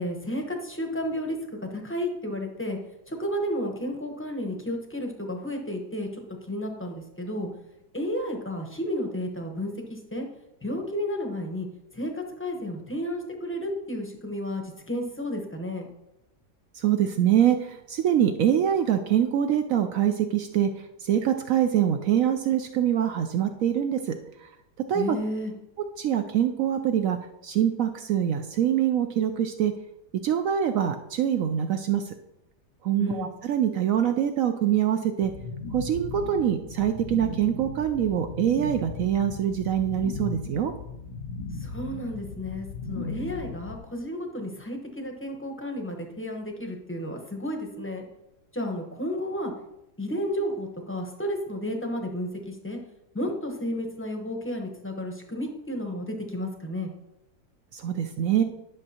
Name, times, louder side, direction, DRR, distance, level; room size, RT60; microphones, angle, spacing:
voice 1, 0.0-2.8 3.1-6.1 6.5-7.5 7.9-10.3 10.6-11.7 11.9-15.9 24.9-25.5 33.0-33.3 41.6-48.0 48.5-49.5 50.0-52.8 53.1-56.9, left 1 dB, 10° left, 2 dB, 0.7 m, -32 dB
voice 2, 16.8-20.7 21.0-24.1 24.9-25.2 26.0-27.2 27.4-29.7 30.2-32.0 32.8-35.3 35.7-40.7 57.7-58.4, right 10 dB, 70° right, 7 dB, 0.8 m, -24 dB
sound 1, 35.2-43.8, left 4 dB, 75° left, 1.2 m, -37 dB
10.5 x 6.3 x 2.8 m, 0.91 s
omnidirectional pair, 1.8 m